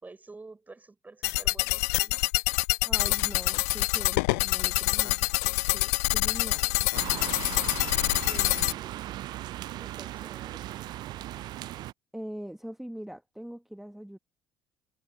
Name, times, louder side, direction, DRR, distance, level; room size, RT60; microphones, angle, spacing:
voice 1, 0.0-2.2 8.2-9.0 9.8-10.6, right 3 dB, 20° right, 4.4 m, -49 dB
sound 1, 1.2-8.7, left 27 dB, 65° left, 0.5 m, -26 dB
voice 2, 2.8-6.9 12.1-14.2, equal, 5° right, 1.6 m, -42 dB
sound 2, 6.9-11.9, right 14 dB, 50° right, 0.6 m, -38 dB
figure-of-eight pair, 55°, 9 cm